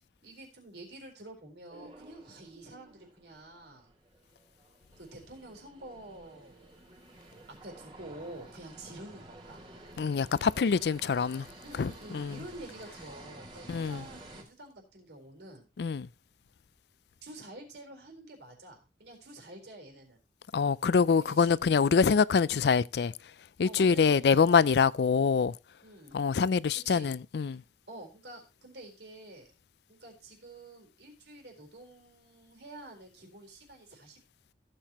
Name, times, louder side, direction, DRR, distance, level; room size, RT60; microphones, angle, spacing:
voice 1, 0.0-3.9 5.0-6.7 7.5-9.6 10.7-10.8 11.6-15.7 17.2-20.2 21.2-21.9 23.6-24.2 25.8-26.2 26.8-27.1 27.5-27.6 27.9-29.5 29.9-34.2, right 1 dB, 75° right, 4.2 m, -48 dB
sound 1, 1.7-14.4, right 2 dB, 30° right, 2.9 m, -52 dB
voice 2, 10.0-11.4 11.8-12.3 13.7-14.0 15.8-16.1 20.5-23.1 23.6-25.5 26.1-27.6, left 5 dB, 65° left, 0.4 m, -25 dB
16.0 x 7.8 x 2.9 m
head